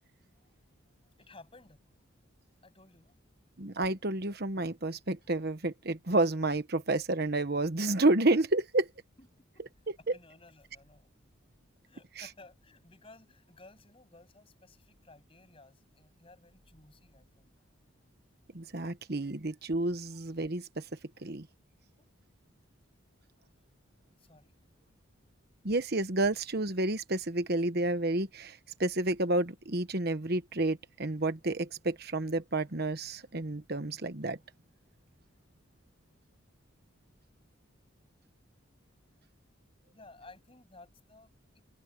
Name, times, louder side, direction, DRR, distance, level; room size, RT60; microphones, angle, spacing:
voice 1, 1.2-1.8 2.6-3.2 9.2-9.3 10.0-11.1 11.8-17.5 22.0-22.1 24.2-24.6 36.0-36.2 39.9-41.6, left 2 dB, 25° left, 7.9 m, -56 dB
voice 2, 3.6-8.9 9.9-10.1 18.5-20.8 21.2-21.5 25.6-34.4, right 2 dB, 50° right, 1.2 m, -30 dB
head